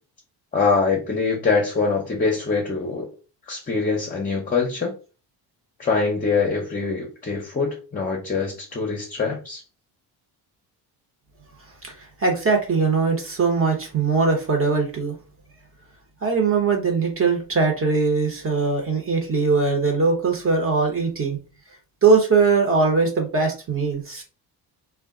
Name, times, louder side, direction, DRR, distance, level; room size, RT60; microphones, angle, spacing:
voice 1, 0.5-3.1 3.5-4.9 5.8-9.6, left 4 dB, 20° left, 0 dB, 0.7 m, -23 dB
voice 2, 12.2-15.1 16.2-21.4 22.0-24.2, right 4 dB, 35° right, 2 dB, 0.9 m, -21 dB
2.3 x 2.1 x 3.6 m, 0.33 s
cardioid pair, 120°, 40 cm